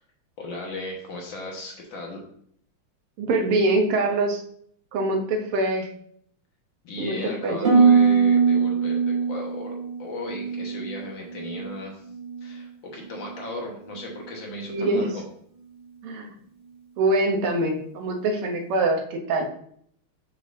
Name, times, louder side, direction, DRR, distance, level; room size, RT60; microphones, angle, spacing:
voice 1, 0.4-2.2 6.8-12.0 12.4-15.2, left 2 dB, 60° left, 0 dB, 2.0 m, -36 dB
voice 2, 3.2-4.4 4.9-5.9 7.0-7.7 14.7-15.1 16.0-16.4 17.0-19.5, right 2 dB, 85° right, 3 dB, 1.8 m, -24 dB
Harp, 7.6-11.7 12.0-12.6 13.1-13.4, right 5 dB, 30° right, 1.4 m, -22 dB
6.7 x 5.8 x 2.6 m, 0.65 s
omnidirectional pair, 2.4 m